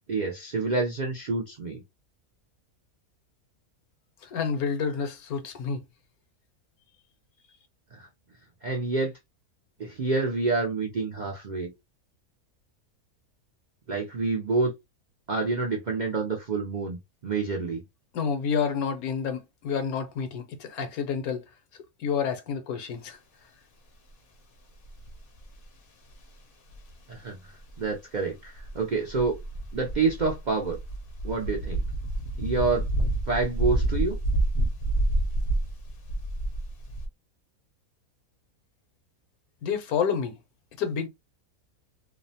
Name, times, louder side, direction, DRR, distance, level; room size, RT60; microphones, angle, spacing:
voice 1, 0.1-1.8 7.9-8.1 8.6-9.1 9.8-11.7 13.9-14.7 15.3-17.8 27.1-29.4 29.7-30.8 31.2-31.8 32.4-32.8 33.3-34.2, right 4 dB, 70° right, 0.4 m, -28 dB
voice 2, 4.2-5.8 18.1-21.4 22.0-23.2 39.6-40.3 40.8-41.1, left 6 dB, 80° left, 1.1 m, -29 dB
sound 1, 24.8-25.5 26.7-26.9 27.7-27.9 28.6-37.1, right 1 dB, 55° left, 0.6 m, -28 dB
2.7 x 2.0 x 2.7 m
omnidirectional pair, 1.6 m